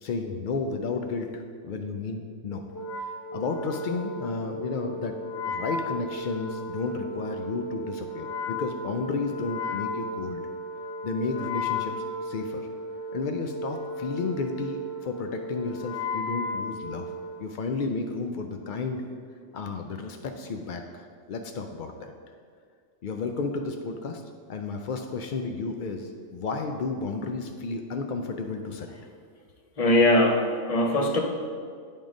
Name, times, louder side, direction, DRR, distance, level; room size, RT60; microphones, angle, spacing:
voice 1, 0.0-2.7 3.0-10.4 11.0-11.9 12.2-12.6 13.1-17.1 17.4-19.0 19.5-22.1 23.0-24.2 24.5-28.9, left 4 dB, 85° left, 5 dB, 0.4 m, -32 dB
Wind instrument woodwind instrument, 2.7-17.5, left 1 dB, 60° left, 0.9 m, -35 dB
voice 2, 29.8-31.2, left 1 dB, 35° left, 3 dB, 0.6 m, -21 dB
9.0 x 3.7 x 5.1 m, 2.1 s
omnidirectional pair, 1.4 m